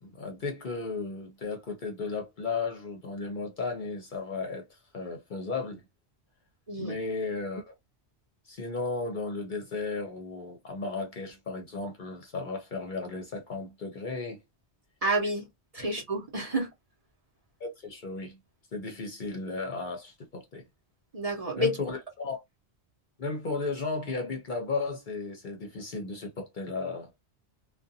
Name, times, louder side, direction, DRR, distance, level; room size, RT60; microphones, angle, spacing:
voice 1, 0.0-5.8 6.8-7.7 8.5-14.4 17.6-18.4 18.7-20.7 21.6-22.4 23.2-27.2, left 3 dB, 55° left, 0.7 m, -35 dB
voice 2, 15.0-15.5 15.7-16.7 21.1-21.7, right 1 dB, 35° right, 0.9 m, -29 dB
2.5 x 2.2 x 2.6 m
omnidirectional pair, 1.1 m